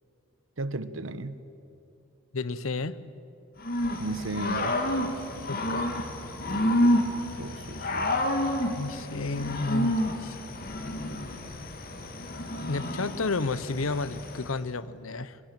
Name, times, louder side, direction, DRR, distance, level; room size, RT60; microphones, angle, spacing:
voice 1, 0.6-1.4 4.0-4.8 7.4-8.1, right 2 dB, 70° right, 1.0 m, -34 dB
voice 2, 2.3-3.0 5.5-6.3 8.8-10.4 12.7-15.4, left 3 dB, 85° left, 0.9 m, -32 dB
Growling / Cricket, 3.6-14.5, left 1 dB, 45° left, 2.2 m, -29 dB
23.5 x 21.5 x 9.0 m
head